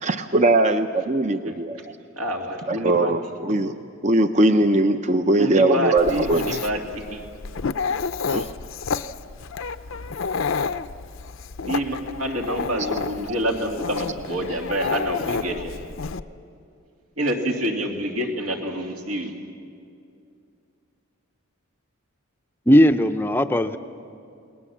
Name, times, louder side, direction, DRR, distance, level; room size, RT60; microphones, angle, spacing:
voice 1, 0.0-2.0 2.7-3.7 4.0-6.6 8.3-8.5, right 2 dB, 35° right, 8 dB, 0.6 m, -20 dB
voice 2, 2.2-3.1 5.4-7.2 11.6-15.8 17.2-19.3, equal, 85° right, 1 dB, 2.9 m, -27 dB
Dog, 6.0-16.2, left 5 dB, 60° left, 0.6 m, -30 dB
voice 3, 22.7-23.8, equal, 10° left, 8 dB, 0.5 m, -17 dB
29.5 x 19.5 x 7.3 m, 2.5 s
head